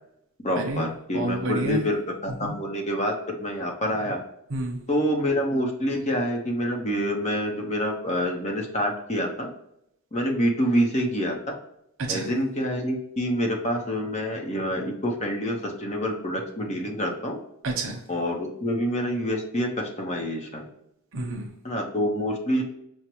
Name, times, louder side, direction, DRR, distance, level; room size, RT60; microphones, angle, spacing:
voice 1, 0.4-4.2 4.9-9.5 10.1-11.4 12.1-17.4 18.1-20.7 21.6-22.6, equal, 30° left, 1 dB, 0.8 m, -27 dB
voice 2, 1.1-1.8 2.4-2.5 4.5-4.8 12.0-12.3 17.6-18.0 21.1-21.5, right 2 dB, 60° right, 2 dB, 0.9 m, -29 dB
6.1 x 2.1 x 3.0 m, 0.77 s
head